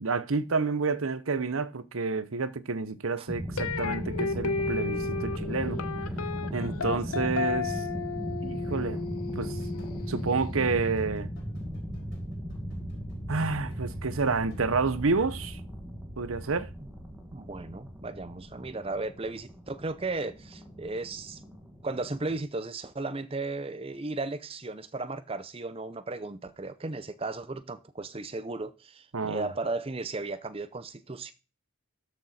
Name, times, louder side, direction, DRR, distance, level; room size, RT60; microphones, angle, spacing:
voice 1, 0.0-5.8 6.5-7.8 8.4-9.0 9.4-9.6 10.1-11.3 13.3-15.6 16.2-16.7 29.1-29.5, right 4 dB, 70° right, 0.8 m, -29 dB
sound 1, 3.3-22.4, equal, 5° right, 2.0 m, -37 dB
sound 2, 3.6-10.7, left 4 dB, 90° left, 1.0 m, -34 dB
voice 2, 6.6-7.0 17.3-21.4 21.8-31.3, right 3 dB, 25° right, 0.6 m, -35 dB
sound 3, 9.4-15.6, left 1 dB, 55° left, 4.1 m, -58 dB
13.0 x 6.4 x 4.3 m
head